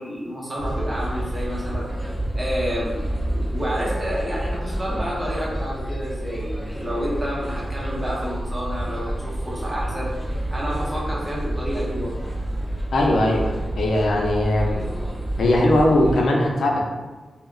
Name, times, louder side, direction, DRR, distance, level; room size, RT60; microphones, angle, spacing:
voice 1, 0.0-2.1 2.3-10.1 10.5-12.2, equal, 15° right, -5 dB, 0.7 m, -29 dB
sound 1, 0.6-16.2, right 1 dB, 25° left, 1.0 m, -29 dB
voice 2, 12.9-14.9 15.4-16.8, left 1 dB, 85° left, -1 dB, 0.4 m, -20 dB
3.5 x 2.0 x 2.3 m, 1.3 s
wide cardioid pair, 135°, 0 cm